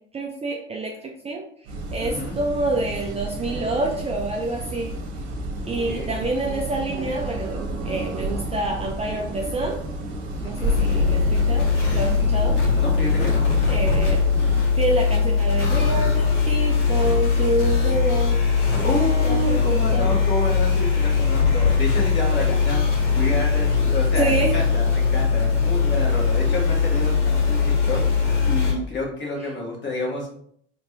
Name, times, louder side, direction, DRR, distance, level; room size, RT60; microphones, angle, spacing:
voice 1, 0.1-1.4 1.9-5.0 5.7-9.8 10.4-12.6 13.7-14.2 14.8-18.4 19.2-20.1 24.1-24.6, right 2 dB, 20° right, 1 dB, 0.6 m, -27 dB
sound 1, 1.7-14.6, right 1 dB, 55° right, 1.2 m, -30 dB
voice 2, 2.0-2.4 5.6-6.3 10.4-10.8 12.1-13.6 18.8-30.3, left 2 dB, 30° left, -2 dB, 1.9 m, -30 dB
sound 2, 10.6-28.7, left 5 dB, 80° left, 1.9 m, -20 dB
4.4 x 3.5 x 3.3 m, 0.65 s
figure-of-eight pair, 65°, 35 cm